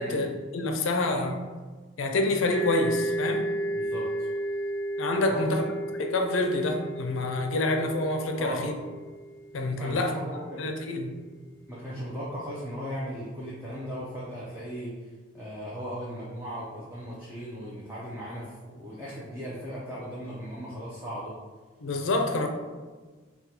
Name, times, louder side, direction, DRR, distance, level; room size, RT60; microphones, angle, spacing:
voice 1, 0.0-1.4 2.0-3.5 5.0-5.6 6.0-8.7 9.5-10.1 10.6-11.1 21.8-22.5, left 2 dB, 75° left, 4 dB, 0.4 m, -27 dB
sound 1, 2.5-10.1, right 1 dB, 80° right, 0.7 m, -33 dB
voice 2, 3.7-4.3 5.3-5.7 8.4-8.7 9.8-10.6 11.7-14.9 15.3-21.3, equal, 10° right, -8 dB, 0.5 m, -37 dB
3.6 x 2.2 x 2.8 m, 1.4 s
head